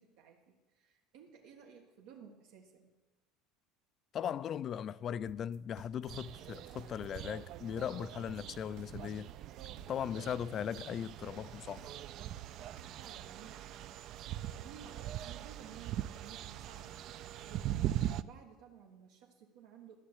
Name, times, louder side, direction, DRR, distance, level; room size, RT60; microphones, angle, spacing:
voice 1, 0.0-2.9 13.0-20.0, right 7 dB, 80° right, 1.6 m, -56 dB
voice 2, 4.1-9.3 9.9-11.9, left 9 dB, 35° left, 0.3 m, -38 dB
sound 1, 5.3-13.2, right 9 dB, 65° right, 1.1 m, -55 dB
sound 2, 6.1-18.2, right 12 dB, 45° right, 0.4 m, -41 dB
13.0 x 6.5 x 9.9 m
cardioid pair, 150°, 0 cm